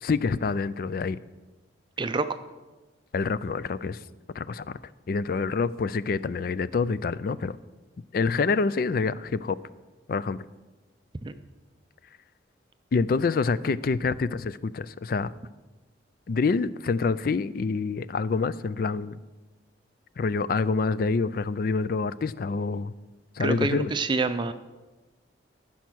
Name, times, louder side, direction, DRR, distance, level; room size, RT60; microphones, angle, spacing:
voice 1, 0.0-1.2 3.1-4.0 4.3-4.8 5.1-7.6 8.1-9.6 10.1-10.4 12.9-15.3 16.3-19.2 20.2-22.9 23.4-23.9, left 4 dB, 50° left, 17 dB, 0.3 m, -26 dB
voice 2, 2.0-2.3 11.2-11.3 23.4-24.5, right 3 dB, 25° right, 10 dB, 0.4 m, -27 dB
15.0 x 5.7 x 6.1 m, 1.2 s
head